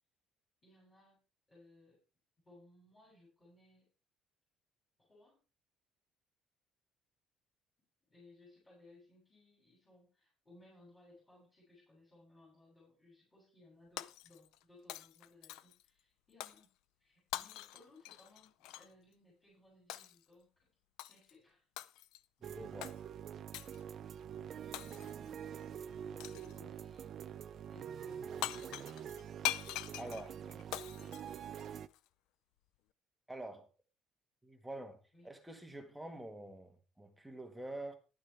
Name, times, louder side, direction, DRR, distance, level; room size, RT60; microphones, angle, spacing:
voice 1, 0.6-1.2 1.5-2.0 2.4-3.9 5.0-5.4 8.0-16.7 17.0-20.7 21.0-21.6 23.8-23.9 24.5-25.5 26.3-27.2 27.6-28.9 29.9-30.6 31.0-31.2 35.1-35.3, left 2 dB, 15° left, 7.9 m, -63 dB
Shatter, 14.0-14.6 14.9-15.8 16.4-16.7 17.3-18.9 19.9-20.2 21.0-21.3 21.8-22.2 22.8-23.0 23.5-23.8 24.7-25.3 26.2-26.6 28.1-28.2 28.4-32.0, left 15 dB, 85° left, 0.6 m, -43 dB
voice 2, 22.4-22.9 30.0-30.3 33.3-33.6 34.4-37.9, right 1 dB, 5° right, 1.7 m, -47 dB
sound 1, 22.4-31.9, right 8 dB, 40° right, 0.5 m, -46 dB
12.0 x 11.5 x 3.5 m
cardioid pair, 175°, 0 cm